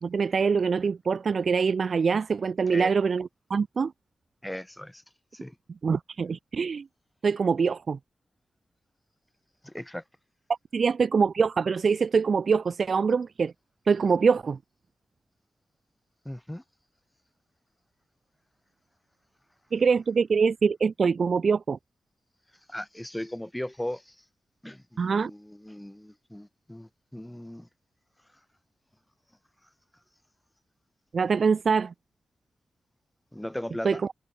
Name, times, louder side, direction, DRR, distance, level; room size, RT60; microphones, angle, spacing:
voice 1, 0.0-3.9 5.8-6.9 7.2-8.0 10.7-13.5 13.9-14.6 19.7-21.8 25.0-25.3 31.1-31.9 33.8-34.0, right 5 dB, 65° right, 0.7 m, -24 dB
voice 2, 4.4-5.0 5.3-5.5 9.6-10.0 16.2-16.6 22.7-24.1 24.6-27.7 33.3-34.0, left 1 dB, 10° left, 3.5 m, -37 dB
cardioid pair, 70°, 0 cm